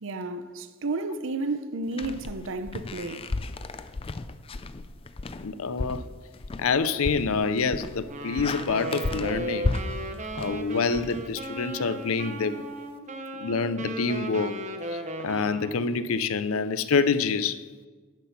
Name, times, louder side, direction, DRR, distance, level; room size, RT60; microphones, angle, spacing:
voice 1, 0.0-3.3, right 3 dB, 60° right, 0.7 m, -32 dB
sound 1, 1.9-11.8, left 3 dB, 25° left, 0.4 m, -34 dB
voice 2, 5.4-6.0 6.6-9.7 10.4-12.6 13.4-14.6 15.2-17.6, left 4 dB, 70° left, 0.6 m, -26 dB
Wind instrument woodwind instrument, 8.0-16.0, right 1 dB, 35° right, 0.9 m, -36 dB
10.5 x 7.6 x 5.8 m
head